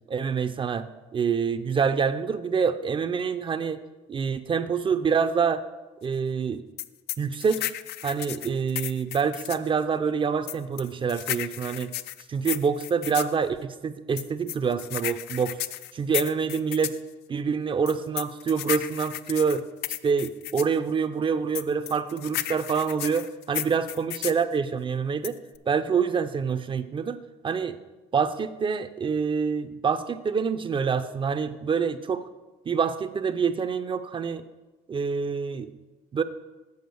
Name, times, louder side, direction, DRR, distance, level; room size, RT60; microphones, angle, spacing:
voice 1, 0.1-0.9 1.1-3.8 4.1-5.6 6.0-6.6 7.2-7.7 8.0-11.9 12.3-15.6 15.9-17.0 17.3-19.7 20.0-25.4 25.7-27.2 27.4-27.8 28.1-32.3 32.7-34.4 34.9-35.7 36.1-36.2, right 6 dB, 30° right, 10 dB, 0.4 m, -26 dB
sound 1, 6.8-9.7 10.5-13.3 14.2-17.0 17.9-20.7 21.5-24.4 25.2-25.6, left 13 dB, 75° left, 0.4 m, -33 dB
7.9 x 5.0 x 6.9 m, 1.1 s
cardioid pair, 110°, 17 cm